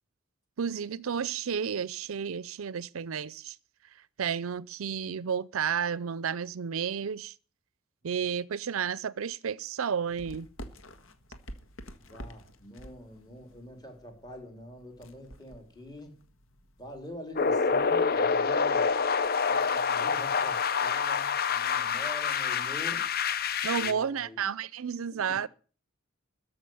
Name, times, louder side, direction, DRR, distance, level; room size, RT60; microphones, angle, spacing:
voice 1, 0.6-3.6 4.2-7.3 8.0-10.5 23.6-25.5, right 7 dB, 80° right, 0.5 m, -32 dB
sound 1, 10.1-17.9, equal, 70° left, 1.6 m, -49 dB
voice 2, 12.0-16.2 16.8-18.9 19.5-23.1 23.7-24.4 25.1-25.5, left 1 dB, 20° left, 3.7 m, -45 dB
sound 2, 17.4-23.9, left 5 dB, 45° left, 0.8 m, -27 dB
14.0 x 6.1 x 9.3 m
head